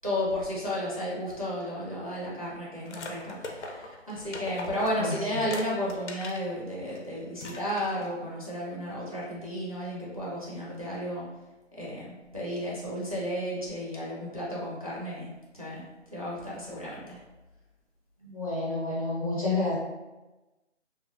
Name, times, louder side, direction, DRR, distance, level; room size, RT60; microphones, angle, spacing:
voice 1, 0.0-11.3 11.7-15.3 15.5-15.8 16.1-17.2, equal, 30° right, -7 dB, 0.4 m, -33 dB
sound 1, 2.9-6.5 6.9-7.0 7.4-8.1, left 2 dB, 75° left, 0.6 m, -40 dB
voice 2, 18.2-19.8, left 2 dB, 30° left, -7 dB, 0.6 m, -29 dB
2.8 x 2.2 x 2.5 m, 1.1 s
figure-of-eight pair, 160°, 36 cm